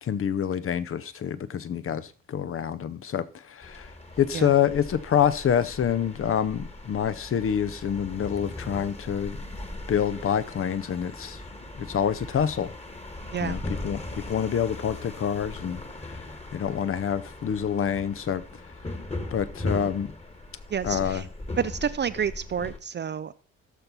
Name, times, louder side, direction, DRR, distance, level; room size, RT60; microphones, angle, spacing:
voice 1, 0.0-3.9 4.2-9.5 9.9-11.4 11.8-12.7 13.4-14.0 14.3-18.4 19.3-20.1 20.8-21.3, left 8 dB, 35° left, 0.7 m, -27 dB
sound 1, 3.6-22.8, left 2 dB, 15° left, 1.6 m, -39 dB
voice 2, 20.7-21.2 21.6-23.3, right 7 dB, 30° right, 0.5 m, -29 dB
15.0 x 6.6 x 4.3 m
figure-of-eight pair, 40°, 40 cm